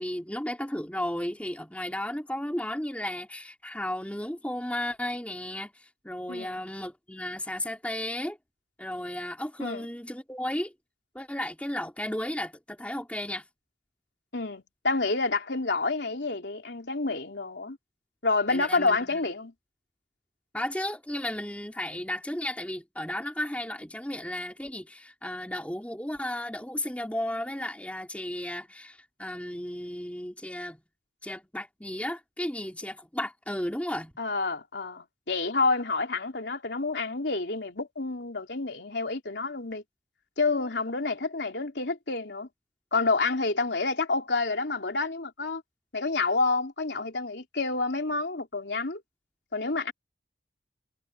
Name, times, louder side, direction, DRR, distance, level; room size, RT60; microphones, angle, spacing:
voice 1, 0.0-8.4 8.8-10.7 11.1-13.4 18.5-19.2 20.5-30.8 31.2-34.1, left 1 dB, 10° left, 2.8 m, -34 dB
voice 2, 6.3-6.6 9.6-9.8 14.3-17.8 18.2-19.5 34.2-39.8 40.4-42.5 42.9-45.6 45.9-49.0 49.5-49.9, left 3 dB, 75° left, 3.3 m, -28 dB
head